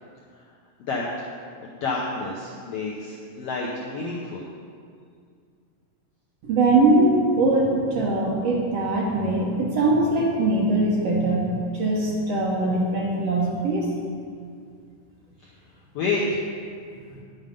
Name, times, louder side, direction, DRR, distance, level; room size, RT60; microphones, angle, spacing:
voice 1, 1.6-4.4 15.9-16.4, left 3 dB, 75° left, -3 dB, 1.4 m, -29 dB
voice 2, 6.4-11.4 11.7-13.9, right 2 dB, 65° right, -3 dB, 1.7 m, -21 dB
10.5 x 7.1 x 5.3 m, 2.2 s
omnidirectional pair, 3.9 m